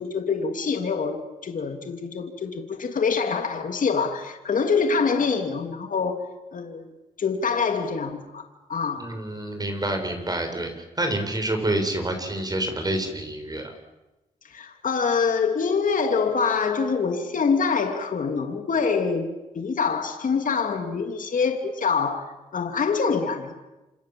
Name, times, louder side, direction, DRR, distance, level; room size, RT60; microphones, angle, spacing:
voice 1, 0.0-6.2 6.5-6.9 7.2-8.4 8.7-9.1 14.5-19.3 19.5-23.5, left 5 dB, 65° left, 5 dB, 2.9 m, -25 dB
voice 2, 9.0-10.7 11.0-13.7, right 1 dB, 25° right, 6 dB, 6.9 m, -27 dB
28.0 x 26.0 x 7.8 m, 1.0 s
cardioid pair, 65°, 15 cm